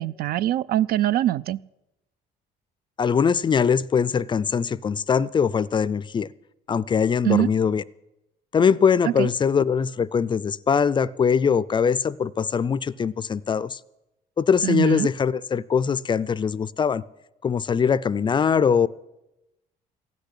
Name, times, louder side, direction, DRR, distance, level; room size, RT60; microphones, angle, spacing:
voice 1, 0.0-1.6 7.3-7.5 9.2-9.3 14.6-15.1, right 13 dB, 65° right, 19 dB, 0.4 m, -23 dB
voice 2, 3.0-6.3 6.7-7.8 8.5-13.8 14.4-17.0 17.4-18.9, left 6 dB, 30° left, 20 dB, 0.4 m, -22 dB
15.0 x 6.6 x 10.0 m, 0.93 s
cardioid pair, 110°, 17 cm